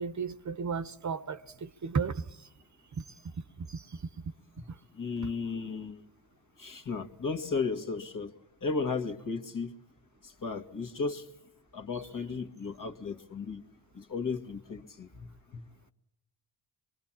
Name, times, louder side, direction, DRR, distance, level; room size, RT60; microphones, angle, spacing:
voice 1, 0.0-2.2 3.0-3.1 3.7-3.9, right 5 dB, 40° right, 1.0 m, -34 dB
voice 2, 4.9-6.0 6.6-8.3 8.6-9.7 10.2-11.3 11.7-13.6 13.9-15.6, left 4 dB, 45° left, 2.0 m, -35 dB
25.5 x 22.0 x 7.5 m
supercardioid pair, 50°, 44 cm